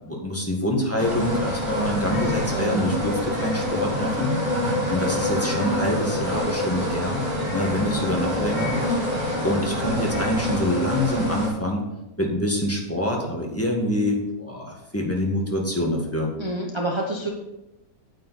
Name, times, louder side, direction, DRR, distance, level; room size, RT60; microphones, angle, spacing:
voice 1, 0.0-4.4 4.9-7.3 7.5-8.8 9.4-11.8 12.2-16.3, left 1 dB, 10° left, -1 dB, 1.6 m, -25 dB
sound 1, 1.0-11.5, left 1 dB, 60° right, 3.6 m, -26 dB
voice 2, 2.5-2.9 16.4-17.3, right 1 dB, 30° right, 0 dB, 0.6 m, -28 dB
9.2 x 8.8 x 4.2 m, 0.94 s
omnidirectional pair, 1.8 m